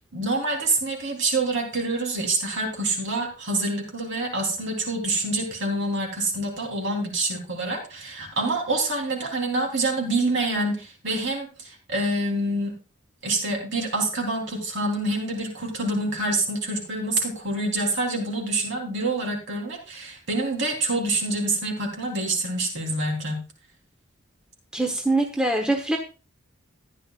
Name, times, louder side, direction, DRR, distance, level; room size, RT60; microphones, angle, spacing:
voice 1, 0.1-12.8 13.2-23.4, right 2 dB, 55° right, 1 dB, 3.5 m, -26 dB
voice 2, 24.7-26.0, right 2 dB, 5° right, 2 dB, 1.0 m, -23 dB
14.5 x 10.0 x 2.4 m, 0.32 s
head